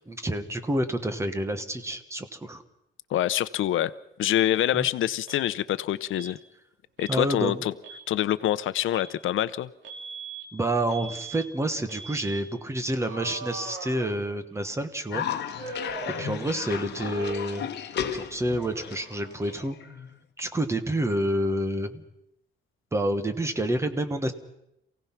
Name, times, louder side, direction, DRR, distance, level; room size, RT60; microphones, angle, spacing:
voice 1, 0.1-2.6 4.7-4.9 7.1-7.6 10.5-15.2 16.2-17.7 18.1-19.8 20.4-22.0 22.9-24.3, right 1 dB, 15° right, 9 dB, 1.2 m, -28 dB
voice 2, 3.1-3.9 4.2-6.4 7.0-7.7 8.1-9.7, left 12 dB, 85° left, 15 dB, 0.7 m, -25 dB
Alarm, 5.3-5.5 6.1-6.4 7.0-7.2 7.7-8.1 8.9-9.1 9.8-10.5 10.9-11.5 11.9-12.4 13.0-14.6 15.6-16.8 17.1-17.7 17.9-19.6, right 3 dB, 70° right, 2.8 m, -41 dB
Cough, 15.1-20.2, left 8 dB, 60° left, 1.2 m, -34 dB
27.5 x 17.0 x 5.9 m, 0.83 s
wide cardioid pair, 175°, 20 cm